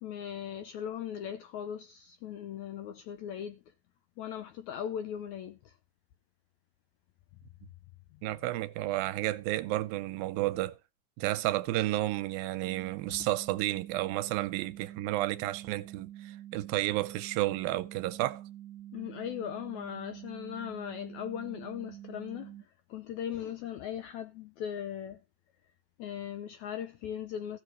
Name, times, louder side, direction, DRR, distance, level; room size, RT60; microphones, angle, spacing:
voice 1, 0.0-3.6 4.2-5.8 13.1-13.3 18.9-25.2 26.0-27.6, left 9 dB, 80° left, 1.7 m, -39 dB
voice 2, 8.2-10.7 11.2-18.4, right 16 dB, 90° right, 2.6 m, -31 dB
sound 1, 12.6-22.6, right 12 dB, 70° right, 2.0 m, -47 dB
14.5 x 6.9 x 4.7 m
omnidirectional pair, 4.1 m